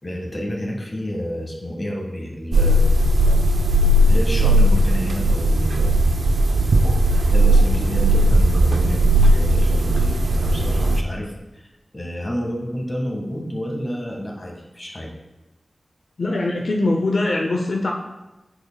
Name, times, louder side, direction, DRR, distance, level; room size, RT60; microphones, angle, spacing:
voice 1, 0.0-2.8 3.9-6.0 7.3-11.3 11.9-15.1, equal, 30° left, 0 dB, 1.7 m, -29 dB
sound 1, 2.5-11.0, right 1 dB, 85° right, 0.5 m, -17 dB
voice 2, 16.2-17.9, left 2 dB, 75° left, 0 dB, 0.7 m, -22 dB
13.0 x 4.9 x 2.3 m, 1.1 s
wide cardioid pair, 80°, 0 cm